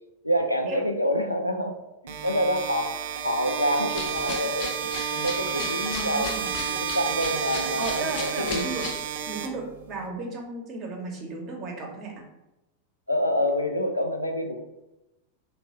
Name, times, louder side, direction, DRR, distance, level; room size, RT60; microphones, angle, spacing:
voice 1, 0.2-1.7 2.0-2.9 3.2-4.7 5.1-6.3 6.7-8.7 13.1-14.6, equal, 85° left, 5 dB, 0.4 m, -27 dB
sound 1, 2.1-10.1, right 8 dB, 55° right, 0.4 m, -31 dB
sound 2, 3.9-9.0, left 4 dB, 40° left, 0.6 m, -37 dB
voice 2, 5.9-6.5 7.8-8.9 9.3-12.3, right 3 dB, 35° right, 0 dB, 0.9 m, -34 dB
3.0 x 2.2 x 4.2 m, 0.96 s
figure-of-eight pair, 90°, 0 cm